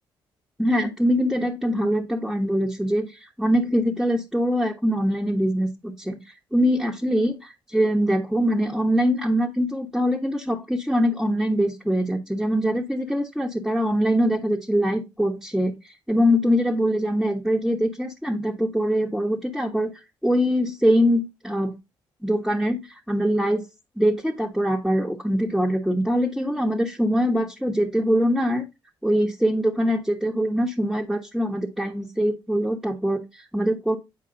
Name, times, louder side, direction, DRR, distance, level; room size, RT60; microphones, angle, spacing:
voice 1, 0.6-6.2 6.5-15.7 16.1-19.9 20.2-21.8 22.2-23.7 24.0-28.6 29.0-34.0, equal, ahead, -2 dB, 1.3 m, -23 dB
8.5 x 4.6 x 3.9 m, 0.23 s
cardioid pair, 100°, 9 cm